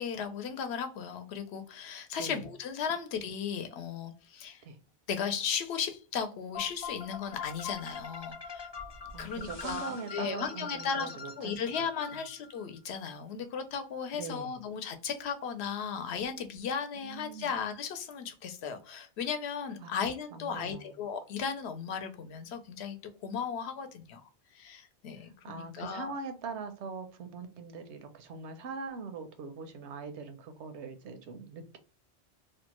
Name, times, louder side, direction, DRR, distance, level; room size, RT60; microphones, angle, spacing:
voice 1, 0.0-4.6 5.1-8.7 9.2-11.1 11.4-23.0 23.2-24.3 24.5-26.1, left 7 dB, 75° left, 7 dB, 0.8 m, -36 dB
sound 1, 6.5-12.6, left 5 dB, 35° left, 0.4 m, -43 dB
voice 2, 9.1-11.9 12.1-12.2 14.1-14.6 17.0-17.5 19.8-20.0 20.3-21.0 25.4-31.8, right 4 dB, 85° right, 8 dB, 0.9 m, -42 dB
2.7 x 2.1 x 2.9 m, 0.35 s
omnidirectional pair, 1.1 m